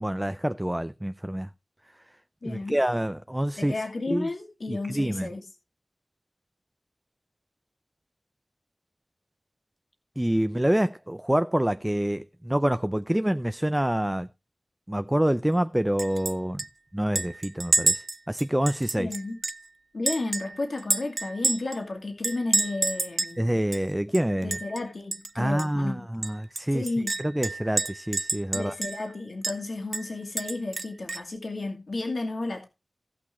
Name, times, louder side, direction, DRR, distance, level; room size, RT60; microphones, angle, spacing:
voice 1, 0.0-1.5 2.4-3.7 4.1-4.3 4.7-5.3 10.2-14.3 14.9-16.6 16.9-19.1 23.4-24.6 25.4-26.9 27.2-28.7, right 1 dB, 10° right, 0.5 m, -27 dB
voice 2, 2.4-2.8 3.6-5.4 19.0-19.4 19.9-23.4 24.4-26.0 26.7-27.1 28.5-32.6, left 2 dB, 70° left, 2.4 m, -32 dB
Chink clink, 16.0-16.3 16.6-16.7 17.2-19.7 20.1-21.8 22.2-23.4 23.7-23.8 24.1-24.8 25.1-25.3 25.6-25.7 26.2-29.1 29.4-29.6 29.9-31.3, right 3 dB, 60° right, 0.5 m, -29 dB
18.5 x 6.1 x 3.2 m
wide cardioid pair, 50°, 0 cm